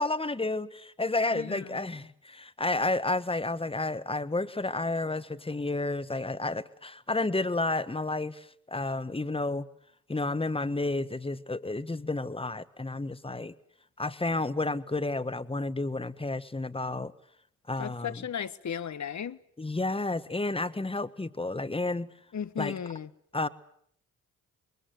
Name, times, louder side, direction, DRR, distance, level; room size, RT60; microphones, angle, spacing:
voice 1, 0.0-9.7 10.1-13.5 14.0-17.1 17.7-18.2 19.6-22.1 22.6-22.7 23.3-23.5, left 2 dB, 15° left, 1.5 m, -31 dB
voice 2, 1.3-1.8 17.8-19.4 22.3-23.1, left 8 dB, 45° left, 1.4 m, -35 dB
28.0 x 22.5 x 7.9 m
hypercardioid pair, 45°, 38 cm